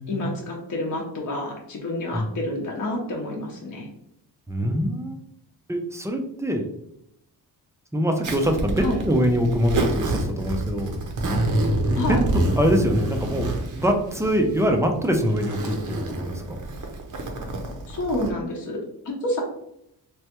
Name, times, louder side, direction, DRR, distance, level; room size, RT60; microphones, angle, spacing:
voice 1, 0.1-3.9 8.8-9.0 12.0-12.2 17.9-19.4, left 1 dB, 45° left, -1 dB, 0.7 m, -29 dB
voice 2, 4.5-5.2 5.7-6.7 7.9-10.9 11.9-12.2 12.6-16.6, equal, 10° right, 4 dB, 0.3 m, -24 dB
Zipper (clothing), 8.2-18.3, right 1 dB, 50° right, 0.6 m, -27 dB
3.2 x 2.2 x 2.9 m, 0.77 s
cardioid pair, 95°, 41 cm